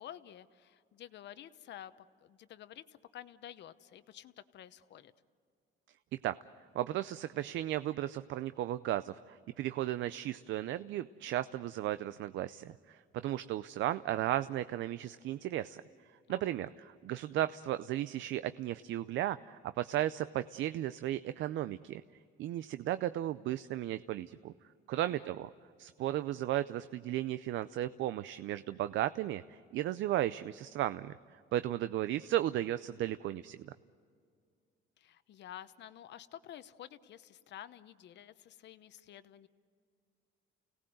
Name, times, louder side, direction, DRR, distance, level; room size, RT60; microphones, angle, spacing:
voice 1, 0.0-1.9 2.2-5.1 16.3-16.7 25.0-25.3 35.0-39.5, left 11 dB, 60° left, 12 dB, 1.0 m, -51 dB
voice 2, 6.7-15.8 16.3-22.0 22.4-24.5 24.9-25.5 25.8-33.7, right 13 dB, 70° right, 13 dB, 0.5 m, -35 dB
30.0 x 18.0 x 7.8 m, 2.2 s
cardioid pair, 130°, 20 cm